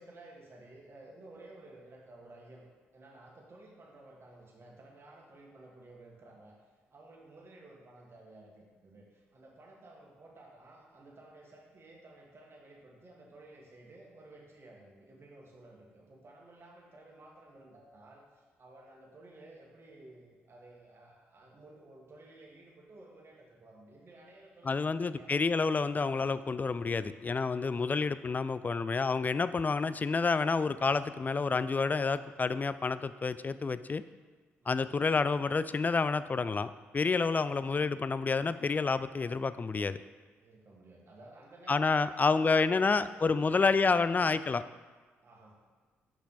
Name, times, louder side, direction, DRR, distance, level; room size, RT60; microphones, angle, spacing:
voice 1, 0.0-2.7 2.9-6.6 6.9-25.3 27.8-28.0 34.6-34.8 40.4-44.1 45.2-45.6, right 2 dB, 45° right, -2 dB, 1.8 m, -54 dB
voice 2, 24.7-34.0 34.7-40.0 41.7-44.6, left 4 dB, 30° left, 14 dB, 0.3 m, -29 dB
6.4 x 5.7 x 4.0 m, 1.4 s
hypercardioid pair, 40°, 6 cm